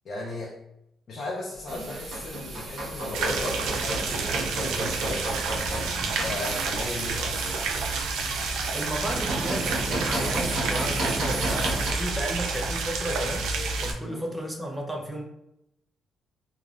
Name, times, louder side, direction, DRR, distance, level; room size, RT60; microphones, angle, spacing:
voice 1, 0.0-0.6 1.1-5.3 6.0-7.6 14.1-14.2, left 2 dB, 55° left, -3 dB, 0.6 m, -36 dB
sound 1, 1.5-13.5, left 1 dB, 85° left, 0.9 m, -44 dB
sound 2, 1.7-11.9, right 2 dB, 60° right, 1.1 m, -33 dB
sound 3, 3.1-13.9, right 4 dB, 90° right, 0.4 m, -29 dB
voice 2, 8.7-13.5 13.8-15.2, right 1 dB, 5° right, 1 dB, 0.6 m, -33 dB
3.3 x 2.2 x 2.4 m, 0.81 s
cardioid pair, 90°, 0 cm